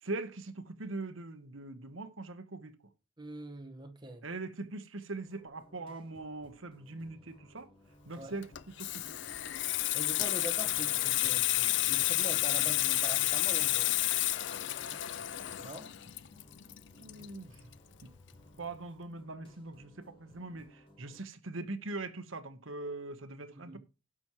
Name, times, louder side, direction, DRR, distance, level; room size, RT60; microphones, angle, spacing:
voice 1, 0.0-2.8 4.2-7.7 8.0-8.5 8.8-9.2 16.9-17.7 18.0-18.1 18.6-23.8, right 2 dB, 75° right, 1.1 m, -42 dB
voice 2, 3.2-4.2 8.2-8.3 9.9-13.9 15.6-15.9 23.6-23.8, right 1 dB, 20° right, 1.2 m, -43 dB
sound 1, 5.2-21.2, equal, 25° left, 4.2 m, -61 dB
Water tap faucet / Sink (filling or washing), 8.4-17.7 18.0-18.3, left 15 dB, 60° left, 0.5 m, -31 dB
17.5 x 6.1 x 3.0 m
head